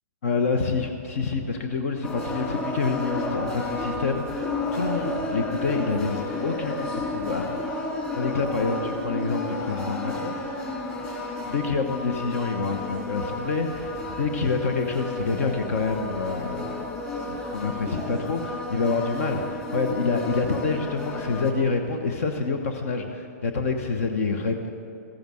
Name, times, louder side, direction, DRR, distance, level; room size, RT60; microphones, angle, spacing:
voice 1, 0.2-7.8 8.1-10.5 11.5-16.8 17.3-24.7, left 4 dB, 60° left, 5 dB, 1.1 m, -27 dB
sound 1, 2.0-21.5, left 2 dB, 20° left, 2.5 m, -32 dB
14.5 x 9.2 x 7.6 m, 2.7 s
hypercardioid pair, 150°, 9 cm